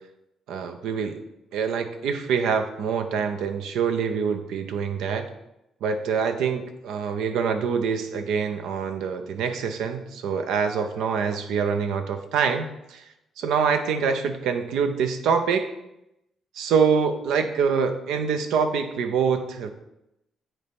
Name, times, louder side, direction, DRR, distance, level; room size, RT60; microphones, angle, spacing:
voice 1, 0.5-1.2 1.5-5.3 5.8-13.0 13.4-15.7 16.5-19.7, right 6 dB, 85° right, 8 dB, 0.7 m, -25 dB
9.2 x 4.2 x 3.6 m, 0.87 s
cardioid pair, 90°, 0 cm